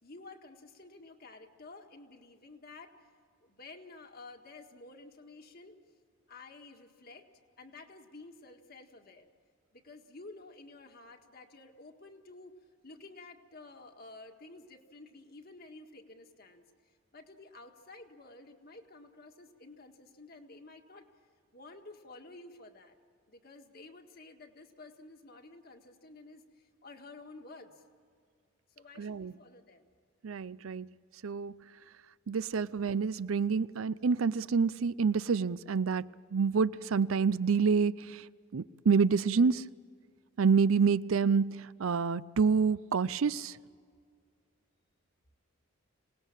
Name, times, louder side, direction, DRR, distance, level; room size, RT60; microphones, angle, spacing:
voice 1, 0.0-3.0 3.4-5.8 6.3-7.2 7.6-9.3 9.7-12.5 12.8-16.6 17.1-21.1 21.5-22.9 23.3-27.8 28.7-29.9, left 3 dB, 50° left, 4 dB, 1.8 m, -52 dB
voice 2, 29.0-29.3 30.2-30.9 31.2-31.6 32.3-38.2 38.5-39.6 40.4-43.6, right 5 dB, 85° right, 18 dB, 0.5 m, -28 dB
26.5 x 19.0 x 7.4 m, 2.1 s
head